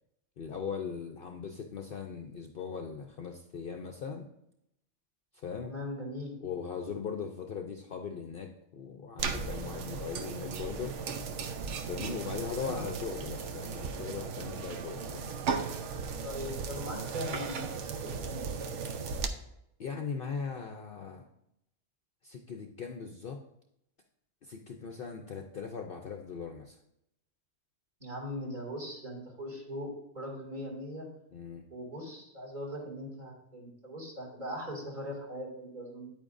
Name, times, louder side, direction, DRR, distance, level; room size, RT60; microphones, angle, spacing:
voice 1, 0.4-4.3 5.3-5.7 6.4-11.0 11.8-15.4 19.8-21.3 22.2-23.4 24.4-26.8 31.3-31.6, left 6 dB, 55° left, 3 dB, 0.7 m, -39 dB
voice 2, 5.6-6.3 12.6-12.9 16.2-17.9 18.2-18.4 28.0-29.9 30.1-31.1 31.7-36.1, equal, 40° right, -4 dB, 2.6 m, -40 dB
sound 1, 9.2-19.3, right 5 dB, 70° right, 1.0 m, -36 dB
9.3 x 8.7 x 2.6 m, 0.81 s
omnidirectional pair, 1.3 m